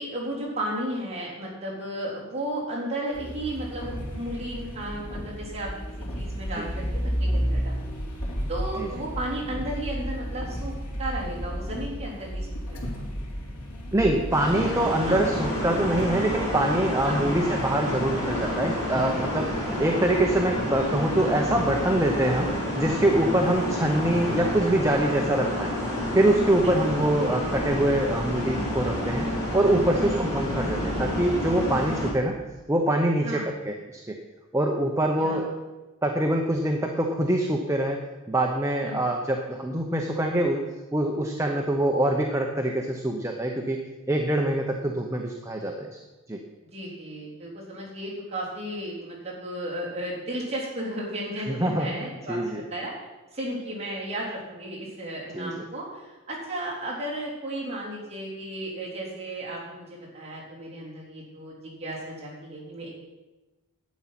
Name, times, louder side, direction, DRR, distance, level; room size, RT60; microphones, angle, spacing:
voice 1, 0.0-5.8 6.1-8.0 8.5-10.7 11.0-13.0 15.1-15.2 17.0-17.2 26.6-26.9 30.0-30.3 33.2-33.5 35.2-35.4 38.8-39.0 46.7-52.9 53.3-62.9, right 1 dB, 30° right, -6 dB, 3.7 m, -34 dB
sound 1, 3.1-16.2, equal, 90° left, 3.2 m, -32 dB
voice 2, 6.5-6.9 8.8-8.9 13.9-25.7 26.1-32.4 32.7-33.7 34.1-34.2 34.5-35.5 36.0-40.6 40.9-43.8 44.1-45.9 46.3-46.4 51.5-51.9 52.3-52.6 55.3-55.6, right 1 dB, 15° right, 2 dB, 0.8 m, -24 dB
sound 2, 14.3-32.1, left 1 dB, 15° left, 4.4 m, -29 dB
11.5 x 8.5 x 5.9 m, 1.1 s
head